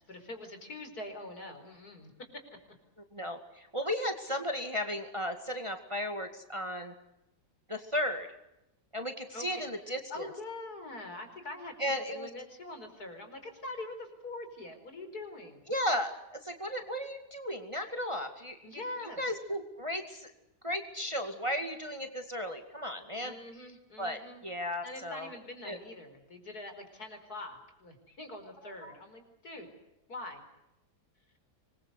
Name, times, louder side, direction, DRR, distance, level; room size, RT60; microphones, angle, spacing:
voice 1, 0.0-2.3 9.3-15.6 18.6-19.2 23.2-24.4 24.8-29.7 30.1-30.4, left 2 dB, 65° left, 6 dB, 5.3 m, -44 dB
voice 2, 3.1-6.9 7.7-8.3 8.9-10.3 11.8-12.3 15.7-18.8 19.2-20.3 20.6-23.3 24.0-25.3 25.6-25.8 28.8-28.9, equal, 20° right, 6 dB, 2.2 m, -35 dB
26.0 x 22.0 x 8.1 m, 0.88 s
omnidirectional pair, 1.8 m